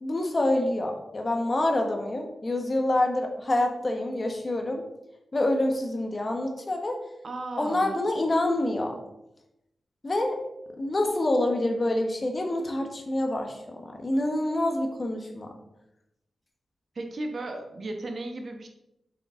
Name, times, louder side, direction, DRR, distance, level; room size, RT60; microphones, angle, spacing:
voice 1, 0.0-4.8 5.3-7.0 7.6-9.0 10.0-10.4 10.8-15.5, left 1 dB, 35° left, 3 dB, 1.2 m, -27 dB
voice 2, 7.2-8.0 16.9-18.7, right 2 dB, 55° right, 4 dB, 1.2 m, -35 dB
7.4 x 5.6 x 3.8 m, 0.87 s
wide cardioid pair, 105°, 0 cm